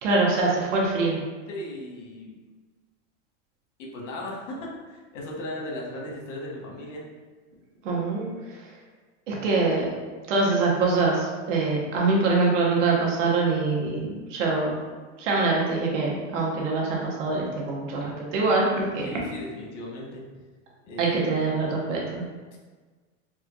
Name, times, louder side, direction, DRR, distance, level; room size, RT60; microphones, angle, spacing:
voice 1, 0.0-1.2 7.8-8.3 9.3-9.8 10.3-14.7 15.2-19.2 21.0-22.2, right 3 dB, 85° right, -3 dB, 1.1 m, -24 dB
voice 2, 1.5-2.4 3.8-7.1 19.0-20.3 20.8-21.5 22.5-22.6, left 1 dB, 85° left, -2 dB, 1.1 m, -36 dB
4.3 x 2.4 x 2.3 m, 1.4 s
supercardioid pair, 170°, 36 cm